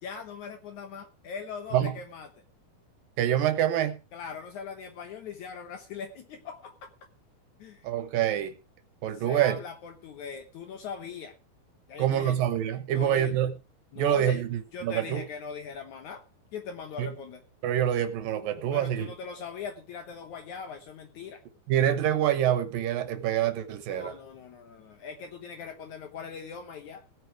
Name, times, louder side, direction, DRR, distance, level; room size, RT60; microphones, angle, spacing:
voice 1, 0.0-2.3 4.1-6.8 7.6-7.9 9.1-11.4 11.9-12.4 12.9-13.3 13.9-14.4 14.7-16.2 16.5-17.4 18.7-21.4 23.9-27.0, left 6 dB, 65° left, 2.0 m, -40 dB
voice 2, 3.2-4.0 7.8-8.5 9.0-9.6 12.0-13.6 14.0-15.2 17.0-17.1 17.6-19.1 21.7-24.1, right 11 dB, 70° right, 2.5 m, -26 dB
17.0 x 8.6 x 4.7 m
omnidirectional pair, 4.5 m